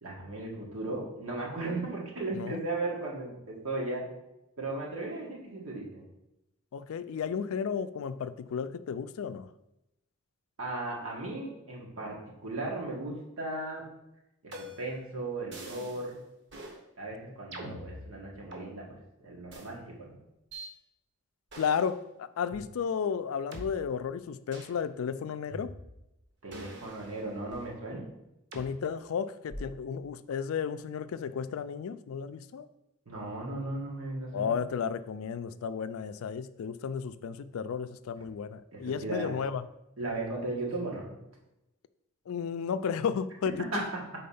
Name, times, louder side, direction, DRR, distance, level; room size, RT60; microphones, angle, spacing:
voice 1, 0.0-4.0 4.6-6.0 10.6-13.8 14.4-16.2 17.0-19.0 19.2-20.1 26.4-28.0 33.0-34.5 38.7-39.3 40.0-41.1 43.7-43.8, right 2 dB, 85° right, -2 dB, 1.7 m, -36 dB
voice 2, 6.7-9.5 17.6-17.8 21.6-25.7 28.5-32.7 34.3-39.6 42.3-43.6, left 6 dB, 80° left, 13 dB, 0.3 m, -33 dB
sound 1, 14.5-15.0 15.5-16.1 16.5-16.8 17.5-18.7 19.5-19.7 20.5-20.7 21.5-21.9 22.5-22.6 23.5-23.7 24.5-24.8 25.5-26.1 26.5-27.8 28.5-28.7 29.5-29.9, equal, 55° right, 1.0 m, -44 dB
4.3 x 4.2 x 5.4 m, 0.89 s
head